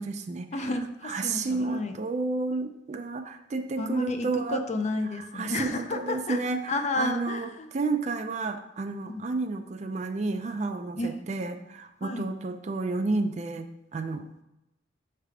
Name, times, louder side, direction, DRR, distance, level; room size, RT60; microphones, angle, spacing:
voice 1, 0.0-0.5 1.1-4.6 5.3-7.5 7.7-13.7 13.9-14.2, right 3 dB, 35° right, 7 dB, 0.4 m, -31 dB
voice 2, 0.5-2.0 3.8-6.4 6.7-7.7 9.1-9.2 11.0-11.3 12.0-12.3, left 2 dB, 35° left, 7 dB, 0.5 m, -31 dB
6.5 x 3.3 x 4.8 m, 0.89 s
head